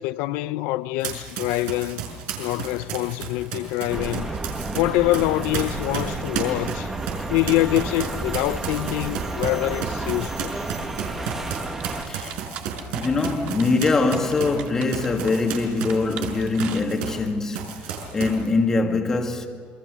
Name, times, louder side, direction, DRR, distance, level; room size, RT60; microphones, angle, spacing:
voice 1, 0.0-2.0 2.4-4.4 4.7-6.9 7.3-10.6, left 17 dB, 80° left, 0.5 m, -25 dB
Run, 1.0-4.8 5.1-17.3 17.5-18.5, right 7 dB, 90° right, 5.8 m, -33 dB
sound 1, 3.9-12.1, right 2 dB, 15° right, 1.5 m, -31 dB
voice 2, 11.1-19.5, left 3 dB, 15° left, 1.9 m, -24 dB
sound 2, 11.5-17.3, right 10 dB, 55° right, 1.7 m, -41 dB
27.0 x 22.5 x 6.3 m
cardioid pair, 175°, 3 cm